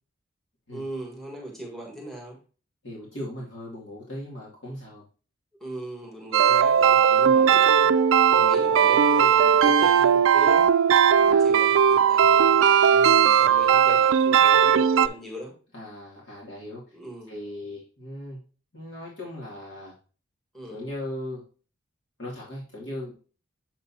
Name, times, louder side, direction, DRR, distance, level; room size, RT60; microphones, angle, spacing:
voice 1, 0.7-2.4 5.6-7.9 8.3-10.7 11.1-12.7 13.2-15.5 16.9-17.3 20.5-20.8 22.8-22.9, right 1 dB, ahead, -2 dB, 1.6 m, -38 dB
voice 2, 2.8-5.0 7.1-7.5 8.3-8.9 11.2-11.7 12.9-13.7 15.7-16.9 17.3-18.4 18.7-19.9 20.6-21.4 22.2-23.1, left 1 dB, 65° left, -5 dB, 2.6 m, -38 dB
sound 1, 6.3-15.1, right 8 dB, 90° right, 0.4 m, -18 dB
7.4 x 6.7 x 2.8 m, 0.37 s
head